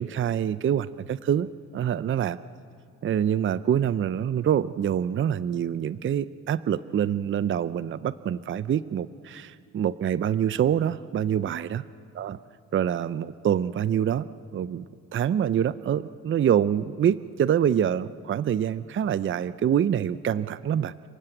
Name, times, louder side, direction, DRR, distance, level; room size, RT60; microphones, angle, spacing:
voice 1, 0.0-1.5 1.7-2.4 3.0-11.8 12.2-12.4 12.7-14.3 14.5-14.8 15.1-21.1, right 9 dB, 40° right, 16 dB, 0.5 m, -25 dB
29.0 x 18.5 x 7.9 m, 2.3 s
cardioid pair, 90°, 30 cm